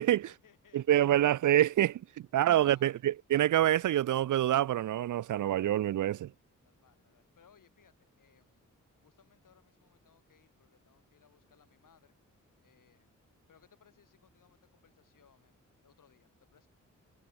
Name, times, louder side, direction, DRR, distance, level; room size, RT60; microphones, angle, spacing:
voice 1, 0.0-1.3 2.2-3.0 6.6-8.7 9.0-12.2 12.6-13.2 13.5-16.7, left 8 dB, 85° left, 5.1 m, -65 dB
voice 2, 0.7-2.0 2.3-6.3, right 12 dB, 70° right, 0.5 m, -26 dB
cardioid pair, 70°, 31 cm